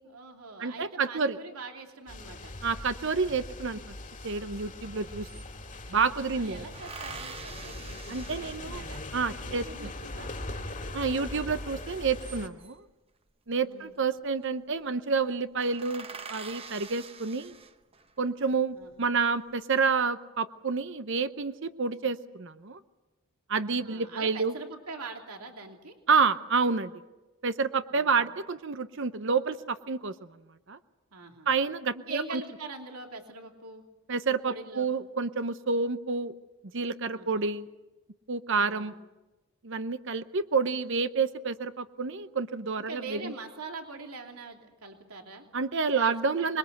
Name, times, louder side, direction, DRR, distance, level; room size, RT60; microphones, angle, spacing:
voice 1, 0.0-2.5 6.1-8.0 8.3-9.0 9.4-10.3 13.6-13.9 18.7-18.9 23.6-25.9 27.9-28.3 31.1-31.5 31.9-33.8 34.4-34.9 37.1-37.4 38.6-38.9 42.9-45.4 45.9-46.4, right 4 dB, 85° right, 3 dB, 3.0 m, -43 dB
voice 2, 0.6-1.4 2.6-3.8 4.2-5.3 5.9-6.6 8.1-9.9 10.9-12.8 13.5-17.5 18.2-22.8 23.5-24.5 26.1-26.9 27.4-30.1 30.7-30.8 31.5-32.4 34.1-36.3 36.7-37.7 38.3-38.9 39.6-43.3 45.5-46.6, right 5 dB, 55° right, 11 dB, 0.8 m, -29 dB
sound 1, 2.1-12.5, left 2 dB, 35° left, 2.1 m, -41 dB
sound 2, 4.6-4.7 4.9-6.0 6.7-9.3 11.9-12.9 14.1-14.4 14.8-14.9 15.2-15.3 15.6-18.1 18.7-19.4, right 5 dB, 25° right, 0.9 m, -45 dB
25.5 x 22.0 x 8.0 m, 1.1 s
head